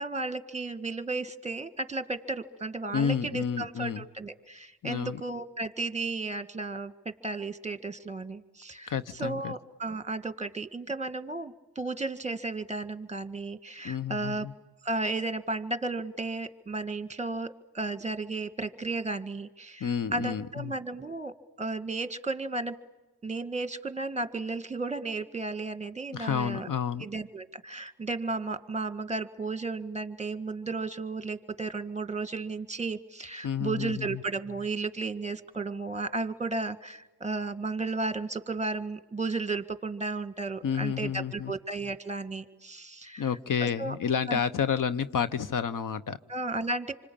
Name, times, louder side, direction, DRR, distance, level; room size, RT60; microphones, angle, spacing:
voice 1, 0.0-8.9 9.2-14.5 14.8-22.8 23.2-26.7 27.0-43.3 43.6-44.0 44.3-44.4 46.3-46.9, right 3 dB, 15° right, 10 dB, 1.8 m, -34 dB
voice 2, 2.9-4.0 4.8-5.2 8.9-9.5 13.8-14.5 19.8-20.7 26.1-27.1 33.4-34.2 40.6-41.5 43.2-46.2, left 7 dB, 55° left, 15 dB, 1.0 m, -30 dB
27.0 x 25.0 x 8.7 m, 1.1 s
supercardioid pair, 50°, 38 cm